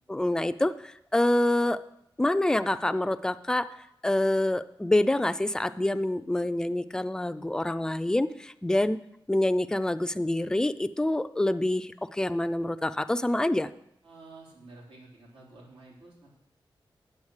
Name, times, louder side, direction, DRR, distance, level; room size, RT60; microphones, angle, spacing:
voice 1, 0.1-1.8 2.2-3.7 4.0-9.0 9.3-13.7, left 1 dB, 10° left, 11 dB, 0.4 m, -26 dB
voice 2, 14.0-16.4, right 2 dB, 90° right, -4 dB, 3.6 m, -50 dB
8.6 x 7.9 x 6.4 m, 0.78 s
wide cardioid pair, 145°, 9 cm